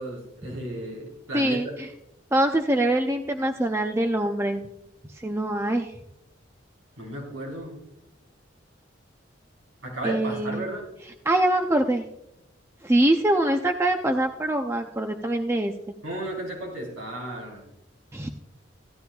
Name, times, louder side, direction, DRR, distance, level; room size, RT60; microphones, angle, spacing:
voice 1, 0.0-1.7 7.0-7.7 9.8-10.9 16.0-17.6, right 1 dB, 85° right, -2 dB, 4.2 m, -34 dB
voice 2, 1.3-1.9 2.3-4.6 5.1-5.9 10.0-10.6 11.3-12.0 12.8-15.7 18.1-18.3, right 1 dB, 15° right, 5 dB, 0.5 m, -24 dB
16.5 x 11.5 x 2.3 m, 0.84 s
head